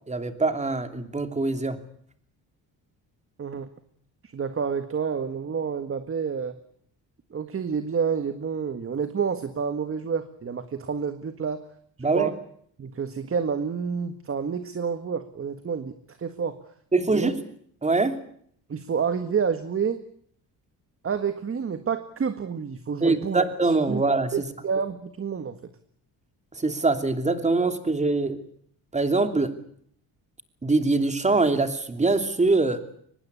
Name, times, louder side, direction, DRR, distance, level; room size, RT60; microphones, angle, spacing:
voice 1, 0.1-1.8 12.0-12.3 16.9-17.3 17.8-18.2 23.0-24.5 26.5-28.4 28.9-29.5 30.6-32.8, right 3 dB, 20° right, 8 dB, 2.9 m, -23 dB
voice 2, 4.2-6.5 7.3-11.6 12.1-12.3 12.8-16.7 17.1-17.3 18.7-20.0 21.0-24.0 24.3-25.6, right 6 dB, 35° right, 10 dB, 1.7 m, -29 dB
24.0 x 20.5 x 8.4 m, 0.63 s
cardioid pair, 115°, 38 cm